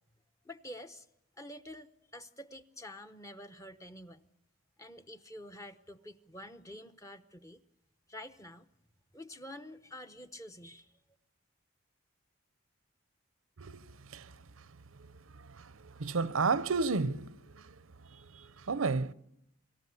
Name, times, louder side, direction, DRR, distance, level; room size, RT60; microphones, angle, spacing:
voice 1, 0.4-1.1 1.4-4.2 4.8-7.6 8.1-8.7 9.1-10.9, left 1 dB, 15° left, 0.8 m, -48 dB
voice 2, 15.5-17.7 18.1-19.1, right 4 dB, 85° right, 0.7 m, -32 dB
26.0 x 14.0 x 8.3 m
head